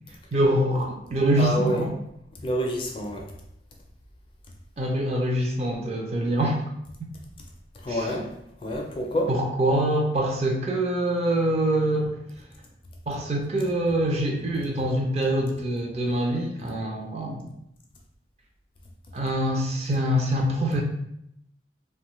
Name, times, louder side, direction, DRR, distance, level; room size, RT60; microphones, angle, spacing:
voice 1, 0.3-2.0 4.8-6.6 7.9-8.1 9.3-12.2 13.1-17.6 19.1-20.8, right 1 dB, 35° right, 0 dB, 0.4 m, -25 dB
voice 2, 1.4-1.9 2.4-3.3 7.8-8.3 8.6-9.3, equal, 30° left, 0 dB, 0.4 m, -27 dB
2.8 x 2.2 x 3.0 m, 0.77 s
head